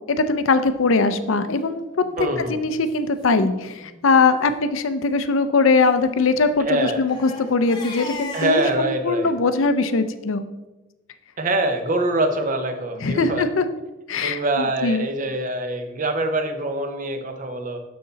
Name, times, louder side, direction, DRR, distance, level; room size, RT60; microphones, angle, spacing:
voice 1, 0.1-1.9 2.2-10.4 13.0-13.7 14.1-15.0, left 3 dB, 75° left, 11 dB, 0.6 m, -21 dB
Crying sobbing, 1.9-2.2 2.8-2.9 3.2-3.3 3.7-3.9 4.3-4.6 5.7-8.8, left 3 dB, 20° left, 1.1 m, -38 dB
voice 2, 2.2-2.6 6.6-7.0 8.3-9.3 11.4-13.5 14.2-17.8, right 2 dB, 40° right, 7 dB, 0.7 m, -24 dB
6.7 x 6.5 x 4.0 m, 1.1 s
head